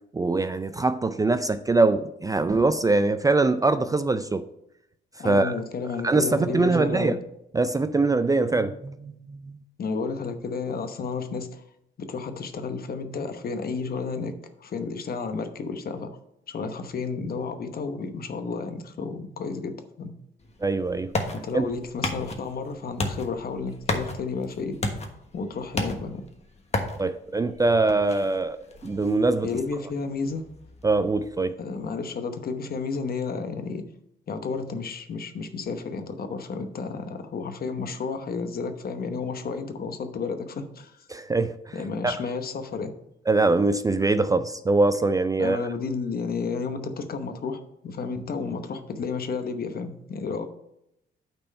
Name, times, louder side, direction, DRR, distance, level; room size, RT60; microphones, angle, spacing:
voice 1, 0.1-4.4 5.2-5.5 6.0-7.2 7.5-9.6 20.6-21.1 21.5-21.7 27.0-29.5 30.8-31.5 41.1-41.7 42.0-42.2 43.3-45.6, right 3 dB, 20° right, 0.4 m, -23 dB
voice 2, 5.2-7.2 9.8-11.6 12.0-14.3 14.6-16.1 16.5-19.7 20.0-20.1 21.4-24.8 25.3-26.2 29.4-30.5 31.6-33.8 34.3-41.1 41.7-42.9 45.4-50.5, left 4 dB, 50° left, 1.0 m, -32 dB
sound 1, 20.4-31.9, left 2 dB, 35° left, 1.3 m, -35 dB
8.7 x 4.4 x 5.3 m
cardioid pair, 90°, 20 cm